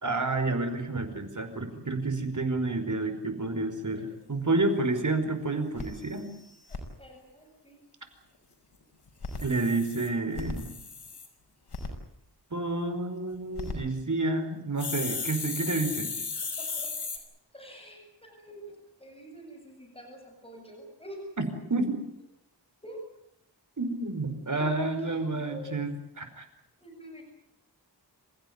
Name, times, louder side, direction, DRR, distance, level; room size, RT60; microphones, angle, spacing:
voice 1, 0.0-6.3 9.4-10.7 12.5-16.1 21.4-21.5 21.7-22.0 23.8-26.4, right 2 dB, 45° right, 7 dB, 5.1 m, -29 dB
sound 1, 4.6-4.7 5.1-5.2 5.4-5.5 5.8-6.8 9.1-11.3 11.7-11.9 13.3-13.7 14.8-17.2, left 4 dB, 75° left, 5.2 m, -36 dB
voice 2, 7.0-7.8 16.6-17.2 17.5-21.3 22.8-23.0 24.5-25.9 26.8-27.2, right 1 dB, 15° left, 2 dB, 8.0 m, -46 dB
28.0 x 15.5 x 9.6 m, 0.77 s
wide cardioid pair, 80°, 41 cm